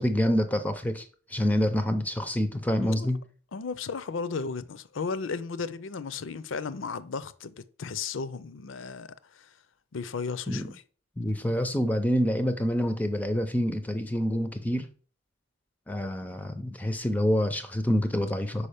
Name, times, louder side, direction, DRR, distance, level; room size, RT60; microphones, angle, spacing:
voice 1, 0.0-3.2 10.5-10.7 11.2-14.9 15.9-18.7, equal, 10° left, 0.5 m, -27 dB
voice 2, 3.5-9.5 9.9-10.6, left 5 dB, 70° left, 0.5 m, -35 dB
5.6 x 4.8 x 5.0 m
head